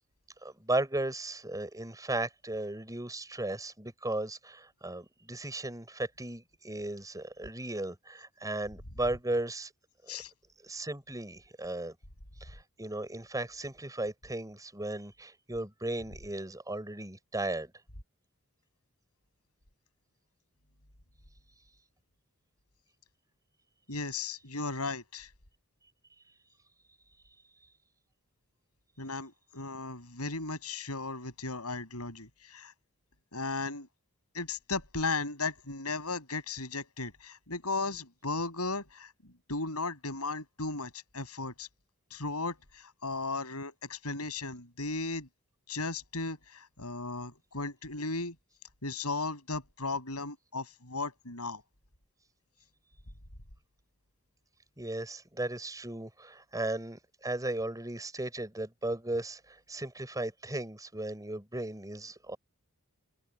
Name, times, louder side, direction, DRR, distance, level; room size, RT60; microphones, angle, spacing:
voice 1, 0.4-9.7 10.0-10.2 10.6-11.9 12.4-17.7 54.8-62.4, right 2 dB, 15° right, 6.1 m, -36 dB
voice 2, 23.9-25.3 29.0-32.7 33.3-33.9 34.3-39.1 39.5-41.7 42.1-45.3 45.7-48.3 48.8-51.6, left 3 dB, 80° left, 7.3 m, -36 dB
head